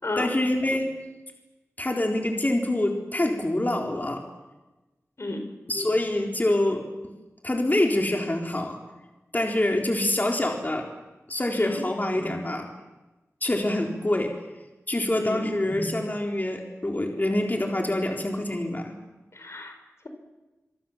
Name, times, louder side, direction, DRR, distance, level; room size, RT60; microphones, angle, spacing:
voice 1, 0.2-0.9 1.8-4.2 5.7-6.8 7.4-8.8 9.3-10.9 11.3-12.7 13.4-14.3 14.9-18.9, left 1 dB, 35° left, 1 dB, 3.9 m, -25 dB
voice 2, 11.5-11.8 15.1-15.5 19.3-19.8, left 2 dB, 60° left, 6 dB, 4.4 m, -32 dB
25.5 x 24.0 x 7.3 m, 1.1 s
wide cardioid pair, 45°, 5 cm